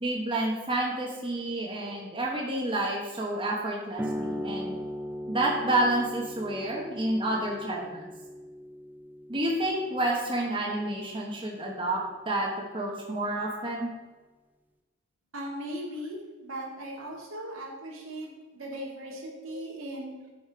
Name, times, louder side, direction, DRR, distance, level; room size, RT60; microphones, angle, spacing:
voice 1, 0.0-4.7 5.3-8.1 9.3-12.0 12.3-13.9 19.5-19.6, right 1 dB, 25° right, -3 dB, 1.2 m, -29 dB
sound 1, 4.0-11.1, equal, 10° right, 0.4 m, -38 dB
voice 2, 15.3-20.1, right 1 dB, 80° right, -2 dB, 2.1 m, -38 dB
9.3 x 5.1 x 5.0 m, 1.3 s
head